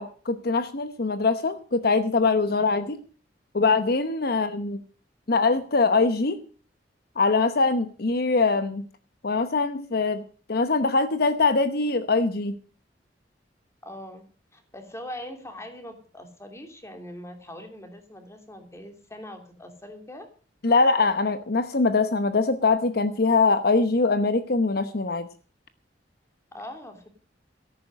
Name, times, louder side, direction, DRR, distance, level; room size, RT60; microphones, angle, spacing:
voice 1, 0.0-3.0 3.5-4.8 5.3-6.4 7.2-8.8 9.2-10.2 10.5-12.6 20.6-25.3, left 3 dB, 60° left, 11 dB, 0.9 m, -23 dB
voice 2, 13.8-14.2 14.5-20.3 26.5-27.1, left 1 dB, 15° left, 6 dB, 2.9 m, -41 dB
13.5 x 11.0 x 6.3 m, 0.41 s
head